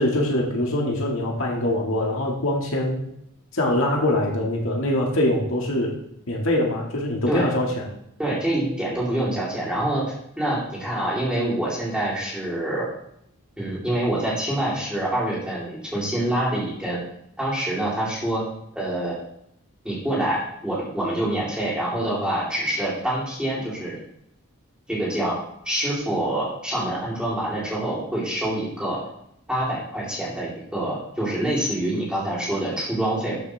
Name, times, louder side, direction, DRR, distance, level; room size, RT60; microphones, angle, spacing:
voice 1, 0.0-3.0 3.5-5.9 6.3-7.9, left 1 dB, 65° left, -1 dB, 1.9 m, -23 dB
voice 2, 8.2-12.9 13.6-17.0 17.4-18.4 18.7-19.2 19.8-24.0 24.9-25.4 25.7-29.0 29.5-33.3, right 1 dB, 5° right, -7 dB, 3.4 m, -26 dB
13.0 x 6.2 x 3.4 m, 0.74 s
head